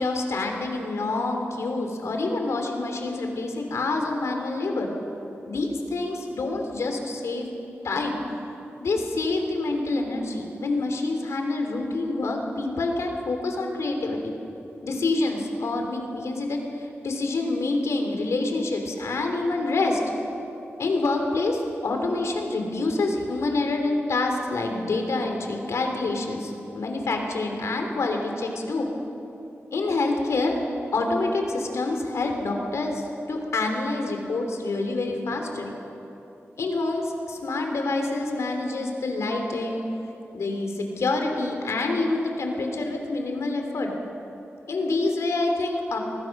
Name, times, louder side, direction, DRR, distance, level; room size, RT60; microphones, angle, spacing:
voice 1, 0.0-4.9 5.5-7.5 7.8-8.2 8.8-14.3 14.8-16.6 17.0-20.0 20.8-28.9 29.7-30.6 30.9-33.0 33.3-35.7 36.6-39.8 40.3-43.9 44.7-46.0, left 2 dB, 85° left, 3 dB, 3.2 m, -27 dB
25.0 x 19.5 x 6.1 m, 3.0 s
wide cardioid pair, 150°, 5 cm